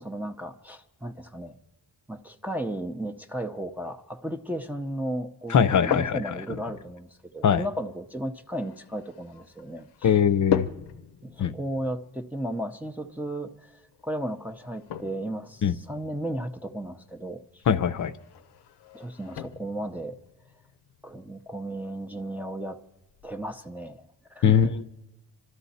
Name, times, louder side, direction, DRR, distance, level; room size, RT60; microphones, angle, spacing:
voice 1, 0.0-1.6 2.1-7.1 7.3-10.2 11.2-17.6 18.9-20.2 21.0-22.8 23.2-24.6, right 1 dB, 5° right, 4 dB, 0.5 m, -34 dB
sound 1, 5.5-23.5, left 8 dB, 90° left, 0.8 m, -39 dB
voice 2, 5.5-6.4 7.4-7.6 10.0-10.7 11.4-11.5 15.6-15.7 17.7-18.1 24.4-24.9, left 8 dB, 50° left, 11 dB, 0.6 m, -22 dB
26.0 x 12.5 x 4.1 m, 0.95 s
wide cardioid pair, 140°, 39 cm